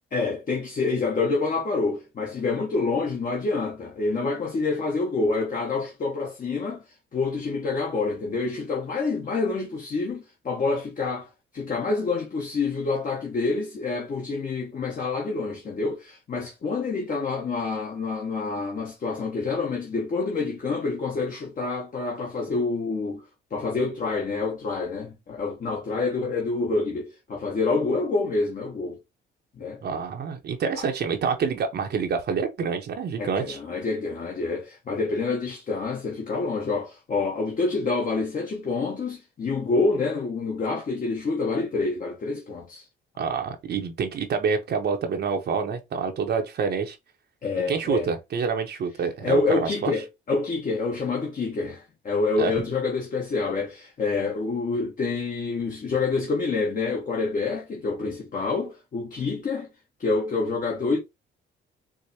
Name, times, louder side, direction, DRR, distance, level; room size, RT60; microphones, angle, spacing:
voice 1, 0.1-6.8 7.1-11.3 11.5-23.2 23.5-29.0 29.6-29.8 30.8-30.9 33.2-42.8 47.4-48.1 49.2-59.7 60.0-61.0, left 3 dB, 45° left, 1.1 m, -27 dB
voice 2, 29.8-33.6 43.2-47.0 47.7-49.9 52.4-52.5, right 6 dB, 55° right, 0.7 m, -27 dB
4.7 x 2.1 x 2.7 m
cardioid pair, 90°, 20 cm